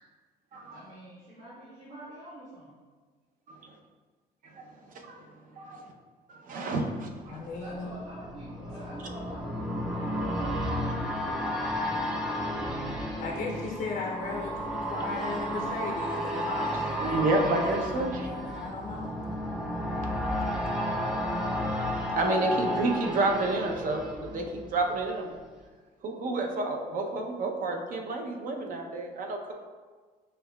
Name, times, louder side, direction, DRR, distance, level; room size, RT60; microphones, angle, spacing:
voice 1, 0.7-2.7 7.5-12.0, equal, 75° right, -12 dB, 1.3 m, -47 dB
voice 2, 5.5-5.8 6.3-7.4 12.3-12.8 17.0-18.3 22.2-25.3 26.0-29.5, right 2 dB, 55° right, 2 dB, 0.6 m, -30 dB
sound 1, 7.2-25.0 25.3-25.4, equal, 5° right, 0.6 m, -32 dB
voice 3, 7.3-7.9 12.9-19.2, left 3 dB, 60° left, -1 dB, 0.5 m, -37 dB
6.5 x 2.2 x 2.2 m, 1.4 s
cardioid pair, 110°, 17 cm